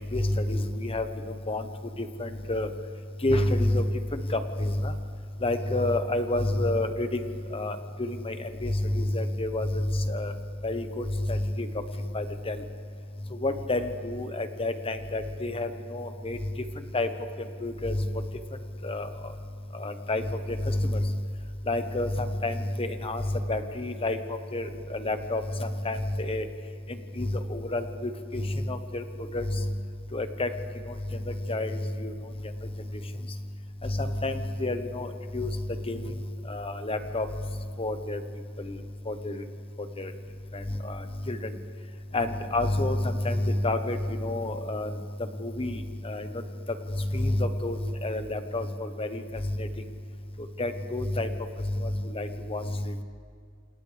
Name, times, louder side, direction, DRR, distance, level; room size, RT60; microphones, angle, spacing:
voice 1, 0.1-1.1 1.5-1.6 2.2-2.7 3.2-3.8 4.1-4.9 5.4-7.2 7.5-8.4 8.6-10.3 10.6-11.7 12.1-12.6 13.4-16.4 16.9-17.1 17.6-18.0 18.8-19.1 19.8-20.2 20.6-21.0 21.7-23.2 23.5-24.2 24.5-26.4 27.2-29.0 29.3-29.6 30.1-30.5 31.3-32.1 33.8-35.1 35.3-35.5 35.9-36.0 36.5-37.3 37.8-38.2 39.1-39.4 40.0-40.1 40.8-41.0 41.3-41.4 42.1-44.9 45.4-45.8 46.0-46.3 47.1-49.2 49.6-49.7 50.6-51.3 51.8-52.9, left 1 dB, 25° left, 8 dB, 1.1 m, -29 dB
28.0 x 27.5 x 3.4 m, 2.1 s
head